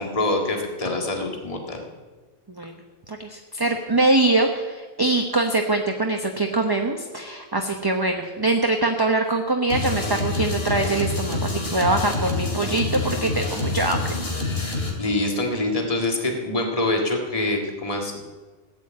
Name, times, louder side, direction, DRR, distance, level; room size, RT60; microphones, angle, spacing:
voice 1, 0.0-1.8 14.6-18.2, left 2 dB, 30° left, 1 dB, 2.0 m, -25 dB
voice 2, 3.1-14.1, right 2 dB, 20° right, 3 dB, 0.9 m, -23 dB
sound 1, 9.7-14.9, left 3 dB, 55° left, 2.7 m, -27 dB
15.5 x 9.0 x 8.6 m, 1.3 s
omnidirectional pair, 1.2 m